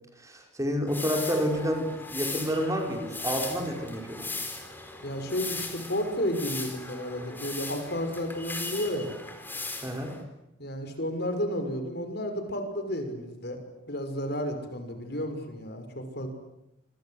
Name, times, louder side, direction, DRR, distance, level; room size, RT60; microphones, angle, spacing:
voice 1, 0.2-4.3 9.8-10.1, equal, 15° right, 3 dB, 5.2 m, -29 dB
sound 1, 0.9-10.2, left 3 dB, 10° left, 4.2 m, -38 dB
voice 2, 5.0-9.2 10.6-13.6 13.9-16.3, equal, 50° left, 7 dB, 5.9 m, -32 dB
27.5 x 26.5 x 8.0 m, 0.83 s
head